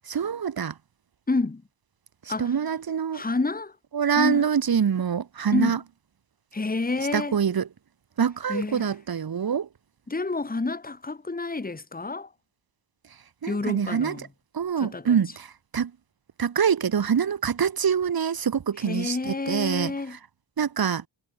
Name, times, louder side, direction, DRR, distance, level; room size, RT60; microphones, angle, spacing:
voice 1, 0.1-0.7 2.4-3.2 3.9-5.8 7.1-7.7 8.2-9.7 13.4-14.3 14.5-15.5 15.7-15.9 16.4-19.9 20.6-21.0, right 7 dB, 45° right, 2.4 m, -25 dB
voice 2, 1.3-1.6 2.3-2.5 3.1-3.7 4.1-4.5 5.5-5.7 6.5-7.4 8.5-8.9 10.1-12.3 13.5-14.3 14.8-15.2 18.8-20.2, left 3 dB, 20° left, 3.2 m, -29 dB
wide cardioid pair, 165°, 48 cm